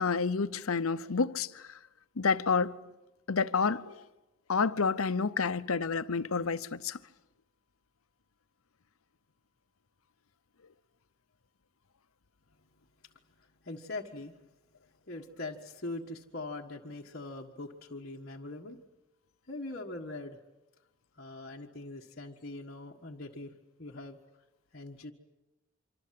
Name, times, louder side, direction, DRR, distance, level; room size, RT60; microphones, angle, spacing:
voice 1, 0.0-1.7 2.2-2.8 3.3-4.0 4.5-7.0, left 5 dB, 85° left, 0.8 m, -29 dB
voice 2, 13.6-14.3 15.1-18.8 19.5-20.4 21.2-23.5 23.8-24.2 24.7-25.1, left 2 dB, 50° left, 1.6 m, -42 dB
26.0 x 25.0 x 7.7 m
head